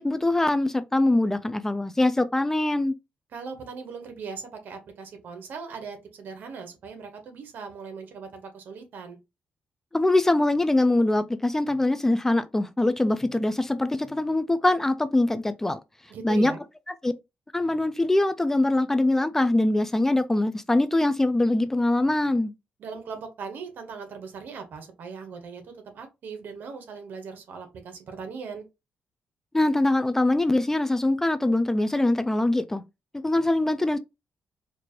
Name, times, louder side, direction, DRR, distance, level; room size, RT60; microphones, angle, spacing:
voice 1, 0.0-3.0 9.9-15.8 16.2-16.5 17.0-17.1 17.5-22.5 29.5-32.8 33.2-34.0, left 2 dB, 10° left, 0.3 m, -23 dB
voice 2, 3.3-9.2 16.1-16.6 22.8-28.6, right 5 dB, 70° right, 1.2 m, -39 dB
4.4 x 2.5 x 3.0 m
cardioid pair, 110°, 3 cm